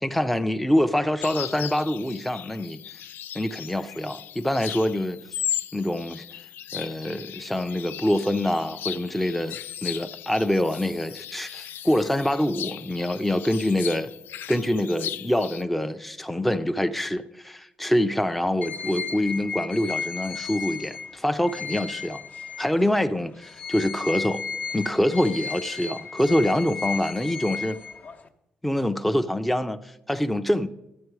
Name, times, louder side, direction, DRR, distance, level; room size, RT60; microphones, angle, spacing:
voice 1, 0.0-3.0 3.3-5.2 5.7-6.2 6.7-14.1 14.5-22.2 22.6-24.4 24.7-27.8 28.6-30.7, left 1 dB, 5° left, 0.4 m, -25 dB
sound 1, 1.2-15.6, left 11 dB, 90° left, 0.3 m, -37 dB
sound 2, 18.6-23.0 23.4-28.3, left 5 dB, 55° left, 0.8 m, -34 dB
13.0 x 8.9 x 4.7 m
cardioid pair, 135°, 3 cm